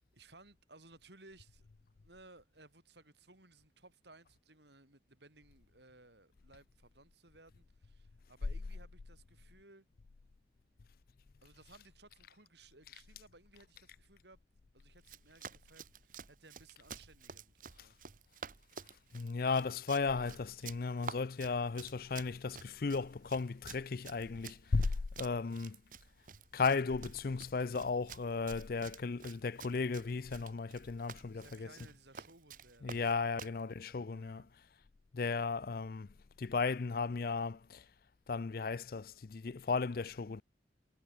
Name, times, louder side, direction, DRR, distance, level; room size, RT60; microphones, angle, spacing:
voice 1, 0.1-1.7 2.0-9.9 11.4-14.4 14.7-18.0 31.3-33.3 34.1-34.5, right 2 dB, 70° right, 6.9 m, -60 dB
Run, 15.0-33.6, right 6 dB, 45° right, 1.0 m, -51 dB
voice 2, 19.1-25.8 26.5-31.7 32.8-34.5 35.1-36.1 36.4-37.8 38.3-40.4, left 4 dB, 55° left, 0.5 m, -35 dB
head